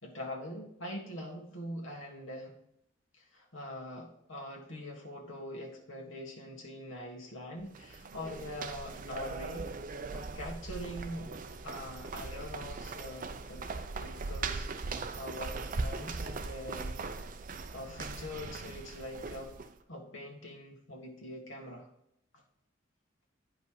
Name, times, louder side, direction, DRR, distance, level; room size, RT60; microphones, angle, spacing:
voice 1, 0.0-2.6 3.2-9.7 10.1-13.6 14.0-17.0 17.7-19.5 19.9-21.9 22.3-22.4, left 1 dB, 90° left, 1 dB, 1.9 m, -43 dB
sound 1, 7.6-19.7, right 3 dB, 45° right, 0.6 m, -40 dB
9.6 x 5.3 x 4.8 m, 0.76 s
head